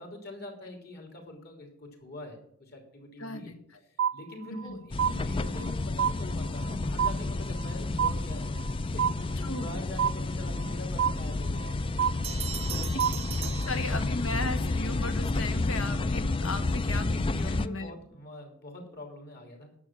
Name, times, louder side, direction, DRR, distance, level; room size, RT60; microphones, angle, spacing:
voice 1, 0.0-3.5 4.1-8.5 8.9-12.0 17.3-19.8, left 2 dB, 50° left, 3 dB, 3.4 m, -44 dB
voice 2, 3.2-3.8 4.5-4.8 9.4-9.7 12.9-13.0 13.7-18.0, left 2 dB, 80° left, 8 dB, 1.6 m, -36 dB
sound 1, 4.0-4.7 5.0-5.7 6.0-6.7 7.0-7.7 8.0-8.7 9.0-9.7 10.0-10.7 11.0-11.7 12.0-12.7 13.0-13.7, right 8 dB, 65° right, 0.4 m, -29 dB
sound 2, 4.9-17.7, left 2 dB, 25° left, 0.4 m, -31 dB
Bell, 12.2-14.5, right 10 dB, 25° right, 0.7 m, -39 dB
11.0 x 7.4 x 7.5 m, 0.70 s
head